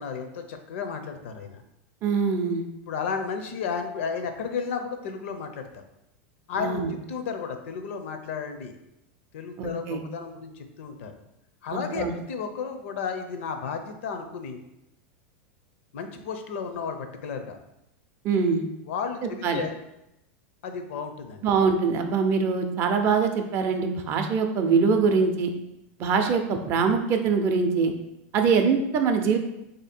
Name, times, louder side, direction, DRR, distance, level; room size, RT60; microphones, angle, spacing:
voice 1, 0.0-1.6 2.9-5.7 6.5-6.8 7.1-8.7 9.3-11.1 11.6-14.6 15.9-17.6 18.8-19.7 20.6-21.4, left 6 dB, 75° left, 7 dB, 0.5 m, -33 dB
voice 2, 2.0-2.6 6.6-7.0 9.6-10.0 11.7-12.1 18.2-18.6 19.4-19.6 21.4-25.5 26.0-27.9 28.3-29.4, right 5 dB, 35° right, 5 dB, 0.4 m, -23 dB
3.2 x 2.7 x 4.2 m, 0.86 s
supercardioid pair, 140°, 7 cm